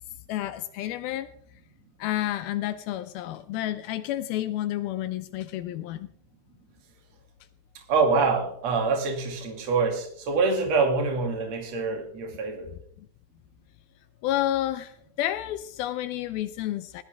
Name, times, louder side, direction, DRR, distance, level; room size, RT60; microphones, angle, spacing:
voice 1, 0.3-1.3 2.0-6.1 12.7-13.1 14.2-17.0, left 13 dB, 80° left, 11 dB, 2.5 m, -30 dB
voice 2, 7.9-12.7, right 4 dB, 50° right, 2 dB, 3.4 m, -25 dB
19.5 x 13.5 x 3.5 m, 0.64 s
omnidirectional pair, 4.4 m